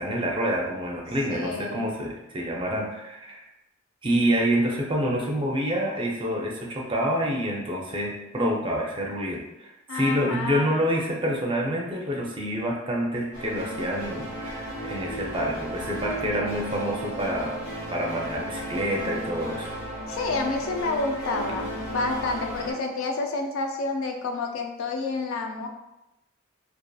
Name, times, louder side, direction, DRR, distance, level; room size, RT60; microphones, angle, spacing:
voice 1, 0.0-3.5 4.0-17.6 17.9-19.7, equal, 25° right, -1 dB, 0.4 m, -27 dB
voice 2, 1.3-1.9 9.9-10.7 16.3-16.5 20.1-25.7, left 3 dB, 80° left, 3 dB, 0.4 m, -29 dB
sound 1, 13.3-22.7, equal, 50° left, 0.8 m, -34 dB
2.5 x 2.4 x 2.3 m, 0.93 s
head